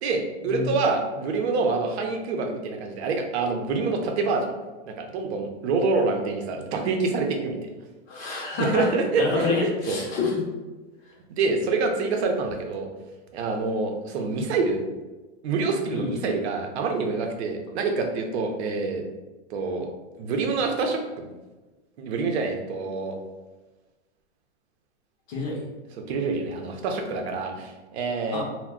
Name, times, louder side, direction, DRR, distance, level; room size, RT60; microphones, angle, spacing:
voice 1, 0.0-4.4 4.8-7.7 8.6-10.0 11.3-12.9 13.3-14.8 15.4-19.0 19.5-19.9 20.2-21.3 22.0-23.1 26.1-28.4, right 4 dB, 65° right, 3 dB, 0.7 m, -26 dB
voice 2, 8.1-10.5 15.9-16.2 25.3-25.6 28.3-28.4, left 3 dB, 35° left, -2 dB, 0.7 m, -28 dB
2.2 x 2.2 x 3.6 m, 1.2 s
hypercardioid pair, 130°, 36 cm